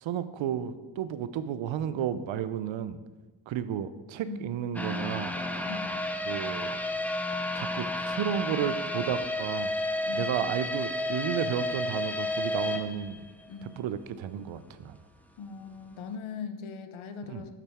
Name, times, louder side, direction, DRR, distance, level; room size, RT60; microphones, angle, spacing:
voice 1, 0.0-3.0 3.5-5.3 6.3-6.8 7.5-9.7 10.1-13.2 13.8-15.0 17.3-17.4, right 9 dB, 65° right, 13 dB, 0.6 m, -32 dB
sound 1, 4.7-13.7 14.1-14.2 14.7-14.8, left 1 dB, 5° left, 0.5 m, -32 dB
voice 2, 5.7-6.1 10.0-10.4 13.5-13.8 15.4-17.5, left 5 dB, 70° left, 9 dB, 0.8 m, -40 dB
12.0 x 4.0 x 3.5 m, 1.2 s
supercardioid pair, 65°, 50 cm